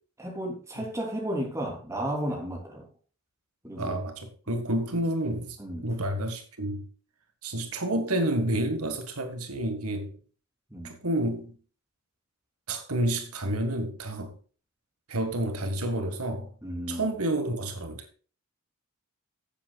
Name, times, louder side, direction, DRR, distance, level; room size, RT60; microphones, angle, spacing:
voice 1, 0.2-2.9 3.6-4.0 5.6-5.9 10.7-11.0 16.6-17.1, right 1 dB, 15° right, 3.2 m, -33 dB
voice 2, 3.8-6.9 7.4-10.2 10.8-11.6 12.7-14.4 15.1-16.5 16.9-18.1, right 1 dB, 80° right, 1.9 m, -29 dB
16.0 x 7.9 x 2.4 m
head